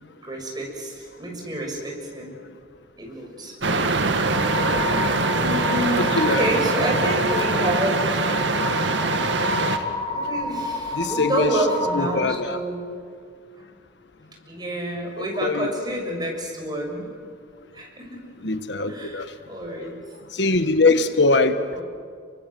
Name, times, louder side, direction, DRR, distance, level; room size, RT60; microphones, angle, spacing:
voice 1, 0.2-2.4 3.0-3.6 5.4-8.0 10.1-12.9 13.6-13.7 14.5-17.1 17.7-18.2 18.9-20.0 21.7-21.8, right 1 dB, 25° right, 0 dB, 6.6 m, -29 dB
sound 1, 3.6-9.8, right 3 dB, 85° right, 1.9 m, -23 dB
sound 2, 4.3-12.4, left 2 dB, 25° left, 2.1 m, -30 dB
voice 2, 6.0-6.5 10.9-11.6 11.9-12.6 15.4-15.7 18.4-19.3 20.3-21.6, left 3 dB, 70° left, 9 dB, 1.4 m, -21 dB
29.5 x 24.5 x 7.8 m, 2.1 s
head